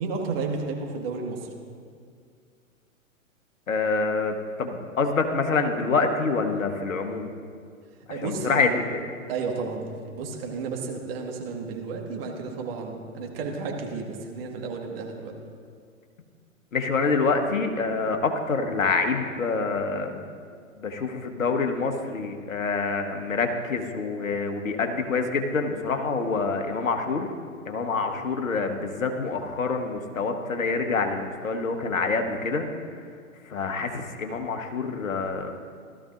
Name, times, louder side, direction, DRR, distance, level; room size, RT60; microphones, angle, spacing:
voice 1, 0.0-1.5 8.1-8.8 9.3-15.3 28.1-28.2, right 4 dB, 45° right, 1 dB, 1.9 m, -32 dB
voice 2, 3.7-7.3 8.2-8.7 16.7-20.3 20.8-27.3 27.6-32.7 33.5-35.5, left 4 dB, 70° left, 5 dB, 1.3 m, -26 dB
16.0 x 13.0 x 2.6 m, 2.2 s
figure-of-eight pair, 115°, 42 cm